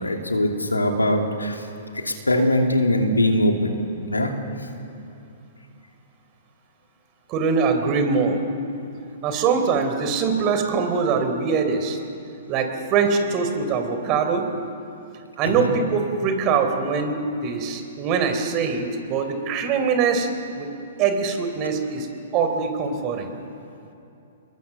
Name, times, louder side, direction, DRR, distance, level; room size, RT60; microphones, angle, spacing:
voice 1, 0.0-1.6 2.0-3.7 4.1-4.3 15.6-15.7, left 1 dB, 85° left, 3 dB, 2.8 m, -21 dB
voice 2, 7.3-8.4 9.2-12.0 12.5-14.5 15.4-20.3 20.6-20.7 21.0-22.1 22.3-23.3, right 5 dB, 35° right, 6 dB, 3.8 m, -23 dB
29.0 x 22.0 x 7.0 m, 2.8 s
figure-of-eight pair, 115°, 0 cm